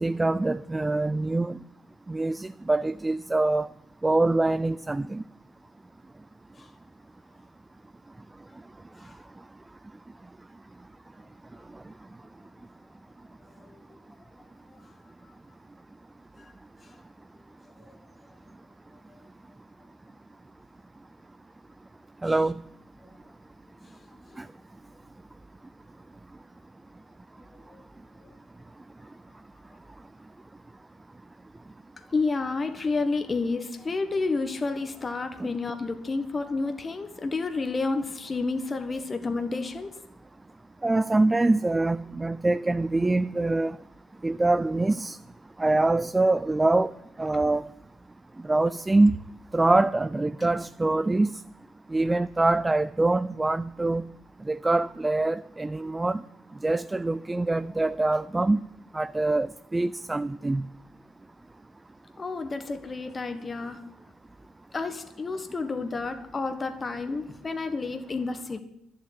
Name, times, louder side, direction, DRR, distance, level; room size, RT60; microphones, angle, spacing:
voice 1, 0.0-1.6 2.1-3.7 4.0-5.2 22.2-22.5 24.4-24.5 40.8-43.8 44.2-45.2 45.6-46.9 47.2-47.6 48.5-49.1 49.5-51.3 51.9-54.0 54.5-56.2 56.6-58.6 58.9-59.5 59.7-60.6, right 2 dB, 20° right, 0.4 m, -24 dB
voice 2, 32.1-39.9 62.2-63.8 64.7-68.6, left 3 dB, 35° left, 1.3 m, -30 dB
11.0 x 7.7 x 10.0 m
hypercardioid pair, 55°, 0 cm